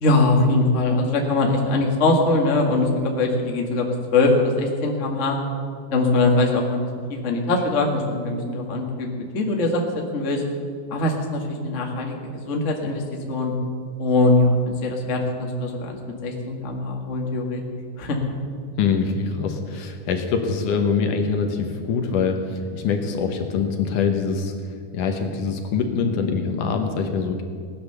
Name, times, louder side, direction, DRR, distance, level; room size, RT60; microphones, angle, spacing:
voice 1, 0.0-3.9 4.1-5.4 5.9-6.8 7.1-9.1 9.3-9.8 10.1-10.4 10.9-13.0 13.3-13.5 14.0-17.6 18.0-18.2, left 2 dB, 40° left, 0 dB, 1.1 m, -22 dB
voice 2, 18.8-27.4, left 5 dB, 65° left, 4 dB, 2.4 m, -24 dB
18.0 x 10.5 x 6.8 m, 2.1 s
omnidirectional pair, 4.3 m